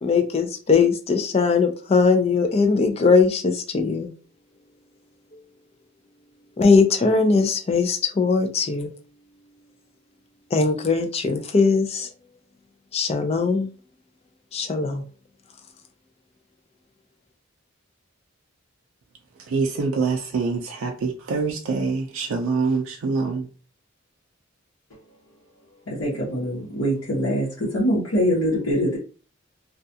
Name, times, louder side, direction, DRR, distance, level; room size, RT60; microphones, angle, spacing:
voice 1, 0.0-4.1 6.6-8.9 10.5-12.1 12.9-13.7 14.5-15.0, left 4 dB, 30° left, 0.4 m, -20 dB
voice 2, 19.5-23.5, right 4 dB, 75° right, 0.4 m, -25 dB
voice 3, 26.0-29.0, equal, 80° left, 1.0 m, -23 dB
2.3 x 2.3 x 2.7 m
head